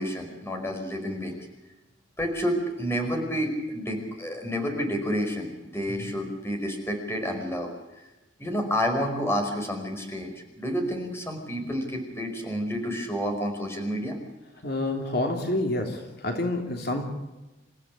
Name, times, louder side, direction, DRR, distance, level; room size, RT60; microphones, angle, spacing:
voice 1, 0.0-1.4 2.2-7.7 8.4-14.2, equal, 15° left, 3 dB, 5.2 m, -29 dB
voice 2, 14.6-17.0, left 2 dB, 55° left, 2 dB, 3.2 m, -28 dB
28.0 x 15.5 x 8.6 m, 1.0 s
head